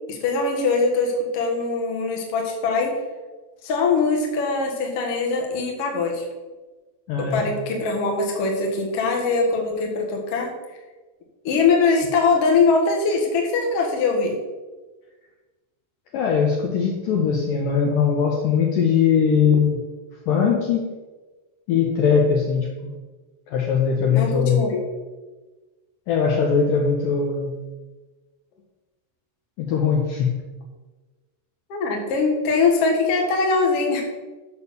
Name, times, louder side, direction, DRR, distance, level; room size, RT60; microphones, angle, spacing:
voice 1, 0.1-2.9 3.6-6.2 7.2-10.5 11.4-14.4 24.1-24.8 31.7-34.0, left 4 dB, 55° left, 0 dB, 1.8 m, -22 dB
voice 2, 7.1-7.5 16.1-19.8 20.3-20.9 21.7-22.9 23.5-24.6 26.1-27.5 29.6-30.4, left 6 dB, 70° left, 0 dB, 2.2 m, -20 dB
7.0 x 6.4 x 6.9 m, 1.3 s
omnidirectional pair, 4.8 m